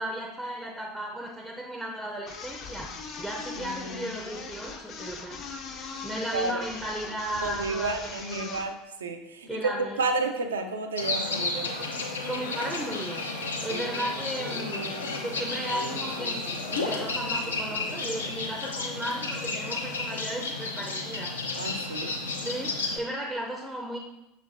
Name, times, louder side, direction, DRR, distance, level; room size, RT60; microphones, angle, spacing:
voice 1, 0.0-5.4 6.0-8.6 9.5-10.0 12.3-13.3 13.6-15.0 15.2-21.4 22.4-24.0, right 1 dB, 5° right, 1 dB, 0.5 m, -35 dB
sound 1, 2.3-8.7, left 5 dB, 40° left, 0.5 m, -40 dB
voice 2, 3.6-4.1 6.3-6.6 7.4-11.7 13.7-13.9 21.6-22.1, right 3 dB, 75° right, 5 dB, 0.4 m, -31 dB
sound 2, 11.0-23.0, left 3 dB, 80° left, 0.6 m, -32 dB
sound 3, 12.3-18.7, left 2 dB, 60° left, 0.9 m, -45 dB
6.2 x 3.1 x 2.5 m, 0.91 s
figure-of-eight pair, 75°, 0 cm